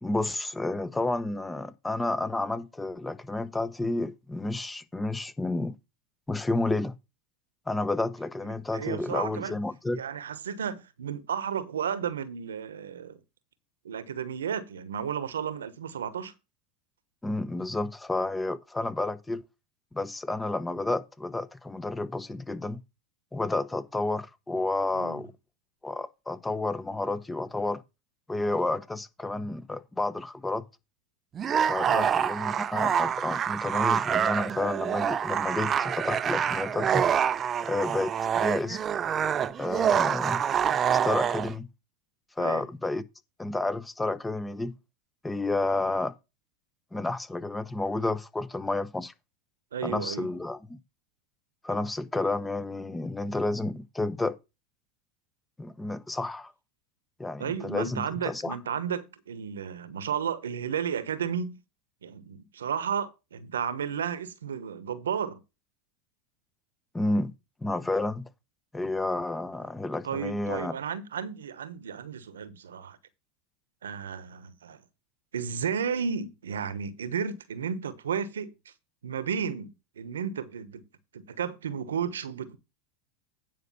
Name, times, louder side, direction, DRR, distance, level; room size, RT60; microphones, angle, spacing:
voice 1, 0.0-5.7 6.3-6.9 7.7-10.0 17.2-19.4 19.9-22.8 23.3-25.3 25.8-27.8 28.3-30.6 31.7-37.0 37.6-38.8 39.6-40.4 40.9-41.7 42.4-43.0 43.4-44.7 45.2-46.1 46.9-49.1 49.8-50.8 51.6-54.4 55.6-56.5 57.2-58.6 66.9-67.3 67.6-68.3 68.7-70.7, left 2 dB, 10° left, 0.9 m, -30 dB
voice 2, 8.4-9.6 9.9-13.2 13.8-16.3 24.9-25.2 31.8-32.1 42.4-42.6 49.7-50.3 57.4-61.6 62.0-65.4 70.0-73.0 73.8-74.8 75.3-78.7 79.0-80.8 81.1-82.6, right 7 dB, 85° right, 1.0 m, -33 dB
sound 1, 31.4-41.5, right 8 dB, 30° right, 0.6 m, -26 dB
9.5 x 5.3 x 5.5 m
hypercardioid pair, 95°, 0 cm